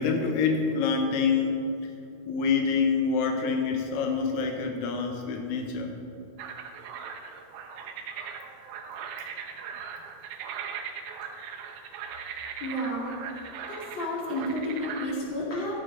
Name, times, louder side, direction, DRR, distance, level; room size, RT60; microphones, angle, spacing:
voice 1, 0.0-1.9 2.3-6.0, left 5 dB, 85° left, 3 dB, 1.6 m, -26 dB
sound 1, 6.4-15.1, right 7 dB, 85° right, 2.5 m, -39 dB
voice 2, 12.6-15.8, left 1 dB, 35° left, -5 dB, 2.4 m, -32 dB
13.5 x 6.1 x 5.1 m, 2.7 s
omnidirectional pair, 4.2 m